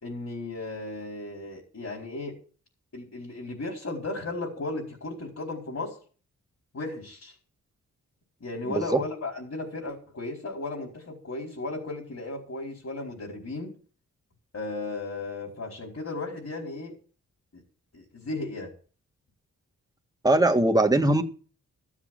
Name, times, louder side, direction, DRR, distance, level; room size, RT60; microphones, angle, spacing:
voice 1, 0.0-2.4 2.9-6.0 6.7-7.4 8.4-13.7 14.5-17.0 17.5-17.6 17.9-18.7, left 2 dB, 50° left, 4.9 m, -35 dB
voice 2, 8.7-9.0 20.2-21.2, right 2 dB, 10° right, 1.7 m, -21 dB
14.0 x 7.4 x 7.5 m
cardioid pair, 65°, 32 cm